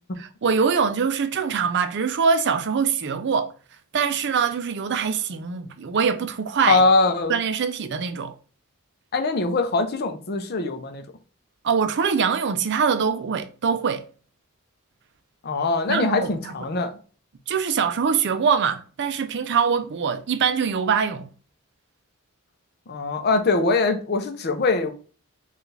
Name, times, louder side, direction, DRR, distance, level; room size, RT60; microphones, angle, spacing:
voice 1, 0.2-3.5 3.9-6.8 7.3-8.3 11.6-14.0 15.9-16.5 17.5-21.3, right 6 dB, 55° right, 0.4 m, -23 dB
voice 2, 6.7-7.4 9.1-11.0 15.4-16.9 22.9-24.9, left 3 dB, 45° left, 0.6 m, -22 dB
4.6 x 2.4 x 3.2 m
head